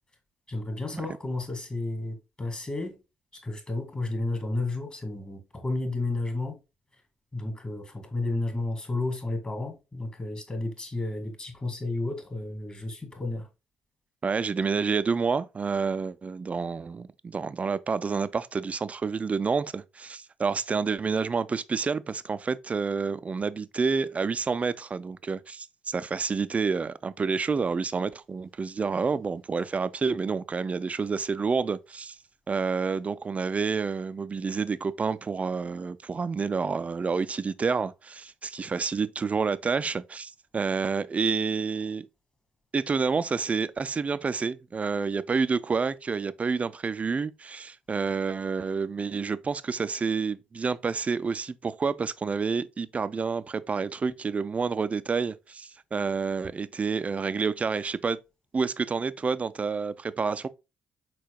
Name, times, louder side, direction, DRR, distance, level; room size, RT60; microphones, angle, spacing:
voice 1, 0.5-3.0 3.3-6.6 7.3-13.5, left 2 dB, 25° left, 1.8 m, -32 dB
voice 2, 14.2-32.2 32.5-42.1 42.7-58.2 58.5-60.5, right 5 dB, 30° right, 0.4 m, -29 dB
4.6 x 4.1 x 2.2 m
hypercardioid pair, 50°, 4 cm